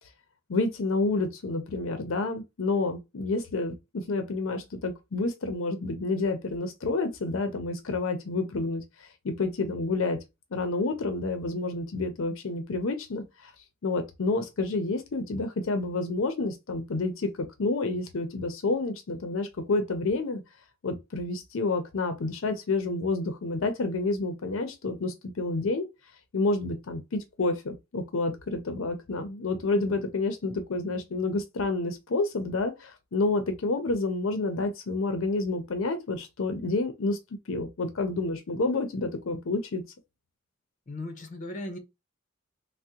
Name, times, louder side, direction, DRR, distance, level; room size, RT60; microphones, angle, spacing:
voice 1, 0.5-10.2 10.5-13.5 13.8-20.4 20.8-25.9 26.3-37.2 37.5-39.8, left 3 dB, 80° left, 0.6 m, -29 dB
voice 2, 40.9-41.8, left 1 dB, 40° left, 0.7 m, -37 dB
3.4 x 2.1 x 2.8 m
head